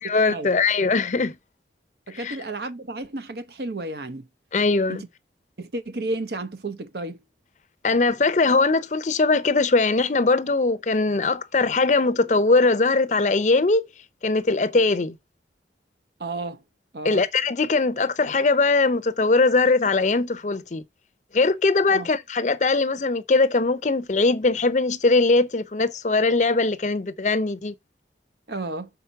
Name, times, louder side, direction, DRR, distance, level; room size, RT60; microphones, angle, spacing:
voice 1, 0.0-1.4 2.1-2.4 4.5-5.0 7.8-13.8 14.2-15.1 17.0-20.8 21.3-27.7, left 3 dB, 40° left, 0.6 m, -21 dB
voice 2, 2.1-4.3 4.9-5.1 5.6-7.2 16.2-16.6 16.9-17.2 21.9-22.1 28.5-28.9, right 2 dB, 65° right, 0.9 m, -32 dB
5.8 x 4.1 x 5.6 m
head